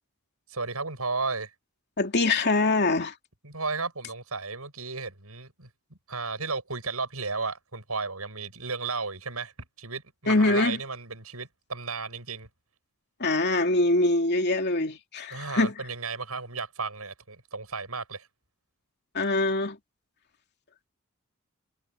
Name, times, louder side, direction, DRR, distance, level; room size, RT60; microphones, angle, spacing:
voice 1, 0.5-1.5 3.4-12.5 15.3-18.3, right 4 dB, 85° right, 8.0 m, -34 dB
voice 2, 2.0-3.1 10.3-10.8 13.2-15.7 19.1-19.8, left 2 dB, 50° left, 2.8 m, -24 dB
head